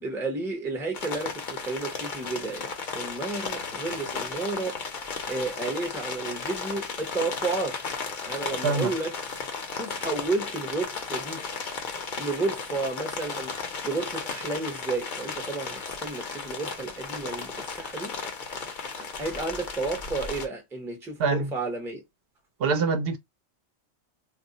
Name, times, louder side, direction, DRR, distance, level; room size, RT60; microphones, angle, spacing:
voice 1, 0.0-4.8 5.3-7.8 8.3-9.1 9.7-11.4 12.2-13.5 13.8-18.2 19.0-22.0, right 3 dB, 5° right, 0.6 m, -32 dB
sound 1, 0.9-20.5, left 5 dB, 50° left, 0.7 m, -35 dB
voice 2, 21.2-21.5 22.6-23.2, right 4 dB, 60° right, 0.8 m, -24 dB
2.4 x 2.0 x 3.8 m
omnidirectional pair, 1.2 m